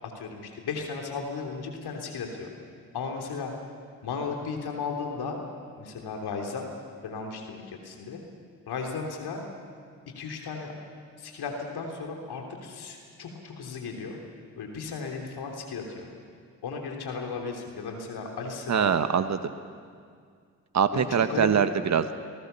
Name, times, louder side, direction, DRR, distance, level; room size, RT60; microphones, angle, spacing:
voice 1, 0.0-2.5 2.9-3.5 4.0-5.4 5.8-6.7 7.0-8.2 8.7-9.4 10.1-10.7 11.2-14.2 14.6-16.1 16.6-19.0 20.9-21.5, left 5 dB, 60° left, 2 dB, 3.3 m, -35 dB
voice 2, 18.7-19.5 20.7-22.2, right 7 dB, 40° right, 11 dB, 1.4 m, -23 dB
28.5 x 19.0 x 7.0 m, 2.1 s
hypercardioid pair, 40°, 44 cm